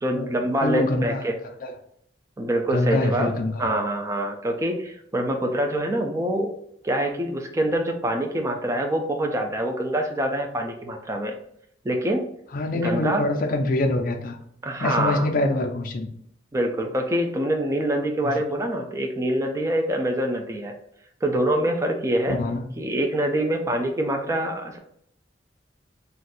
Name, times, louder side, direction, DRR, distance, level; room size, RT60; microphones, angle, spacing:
voice 1, 0.0-1.4 2.4-3.3 3.6-6.5 6.8-11.3 11.8-12.3 12.8-13.3 14.6-15.3 16.5-20.7 21.2-22.4 22.8-24.8, right 1 dB, 15° right, 3 dB, 0.4 m, -25 dB
voice 2, 0.6-1.2 1.6-1.7 2.7-3.5 12.5-14.4 14.8-16.1 18.2-18.3 22.3-22.8, left 2 dB, 45° left, 3 dB, 0.4 m, -25 dB
2.6 x 2.2 x 4.0 m, 0.69 s
head